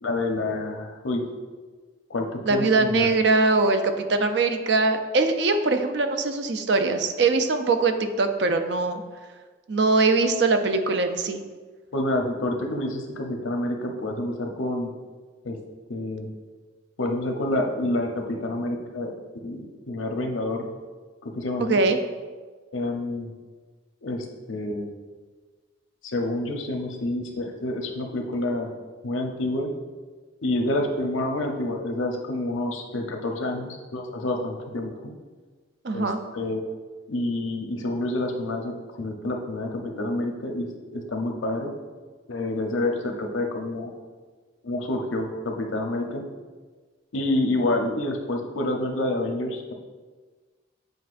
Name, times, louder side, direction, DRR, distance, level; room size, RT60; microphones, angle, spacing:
voice 1, 0.0-1.3 2.1-3.1 11.9-14.9 15.4-15.6 15.9-16.3 17.0-19.1 19.4-20.7 21.2-21.8 22.7-23.3 24.0-24.9 26.0-28.7 29.0-29.7 30.4-35.1 35.9-36.6 37.1-41.7 42.3-43.9 44.6-46.2 47.1-49.7, left 1 dB, 90° left, 3 dB, 0.8 m, -28 dB
voice 2, 2.5-9.0 9.7-11.4 21.6-22.0 35.8-36.2, right 3 dB, 60° right, 7 dB, 0.5 m, -22 dB
8.0 x 5.1 x 2.5 m, 1.4 s
head